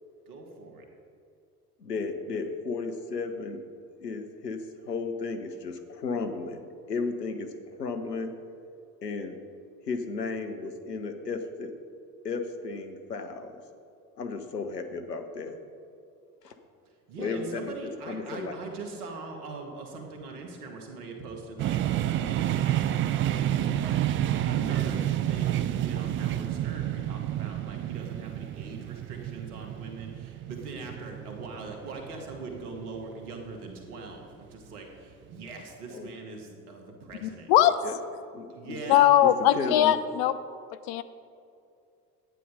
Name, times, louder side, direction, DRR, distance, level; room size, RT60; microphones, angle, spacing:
voice 1, 0.3-0.9 17.1-37.5 38.5-39.1, right 3 dB, 70° right, 2 dB, 2.0 m, -41 dB
voice 2, 1.8-8.3 9.0-9.4 9.9-11.7 12.2-13.6 14.2-15.5 16.4-16.5 17.2-18.5 35.9-36.1 37.8-38.0 38.3-38.8 39.2-40.0, left 4 dB, 85° left, 6 dB, 0.9 m, -34 dB
sound 1, 21.6-33.4, right 12 dB, 30° right, 0.4 m, -29 dB
voice 3, 37.2-37.8 38.9-40.4 40.9-41.0, left 12 dB, 50° left, 13 dB, 0.6 m, -21 dB
11.5 x 9.4 x 5.1 m, 2.5 s
figure-of-eight pair, 60°, 47 cm